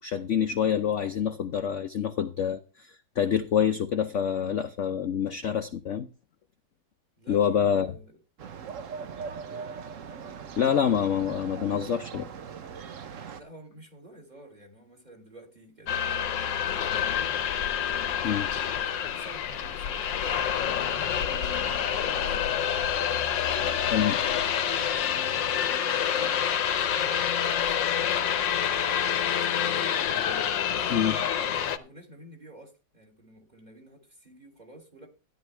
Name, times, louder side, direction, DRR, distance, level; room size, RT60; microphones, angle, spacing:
voice 1, 0.0-6.1 7.3-7.9 10.6-12.3 18.2-18.5 23.9-24.2 30.9-31.2, left 8 dB, 55° left, 8 dB, 0.9 m, -26 dB
voice 2, 7.2-8.2 9.5-9.7 13.3-17.3 17.9-22.8 23.3-26.3 26.9-30.0 30.7-35.1, right 1 dB, 25° right, 3 dB, 3.3 m, -50 dB
sound 1, 8.4-13.4, right 6 dB, 50° right, 1.1 m, -40 dB
sound 2, 15.9-31.8, left 9 dB, 85° left, 1.7 m, -27 dB
14.0 x 10.5 x 3.4 m, 0.32 s
omnidirectional pair, 1.9 m